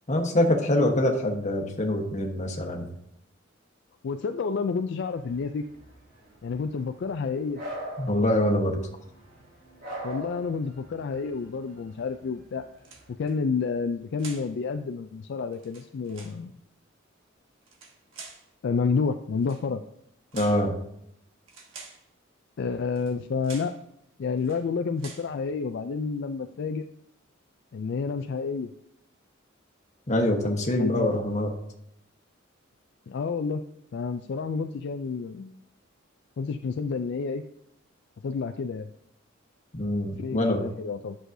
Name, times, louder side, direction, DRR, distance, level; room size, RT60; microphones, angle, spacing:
voice 1, 0.1-2.9 8.0-8.8 20.3-20.7 30.1-31.5 39.7-40.7, left 1 dB, 35° left, 2 dB, 1.2 m, -24 dB
voice 2, 4.0-5.6 6.4-7.6 10.0-12.7 13.2-16.5 18.6-19.8 22.6-23.7 24.2-26.8 27.7-28.7 30.8-31.1 33.1-33.6 33.9-35.6 36.4-37.4 38.2-38.9 40.2-41.2, left 5 dB, 60° left, 7 dB, 0.3 m, -29 dB
sound 1, 5.0-13.1, right 1 dB, 55° right, 3.2 m, -43 dB
sound 2, 12.8-13.3 14.2-14.5 15.5-16.4 17.6-18.5 19.4-19.7 20.3-20.7 21.5-22.1 22.9-23.2 23.4-23.8 24.4-24.6 25.0-25.3, right 4 dB, 85° right, 1.3 m, -46 dB
10.0 x 6.3 x 2.7 m, 0.75 s
head